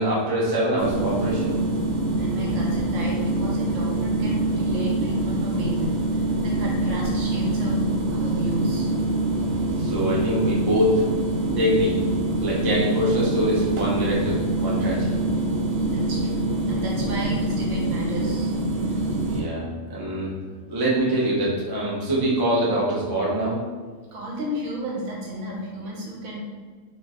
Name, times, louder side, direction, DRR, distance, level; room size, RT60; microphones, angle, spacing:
voice 1, 0.0-1.6 9.3-11.1 11.6-12.1 12.4-15.2 19.3-20.4 20.7-23.7, right 1 dB, 40° right, -5 dB, 0.3 m, -24 dB
sound 1, 0.8-19.4, right 2 dB, 65° right, 0.7 m, -25 dB
voice 2, 2.2-7.9 8.1-8.9 15.8-18.5 24.1-26.4, equal, 90° right, -3 dB, 1.2 m, -33 dB
3.0 x 2.1 x 3.4 m, 1.5 s
omnidirectional pair, 1.4 m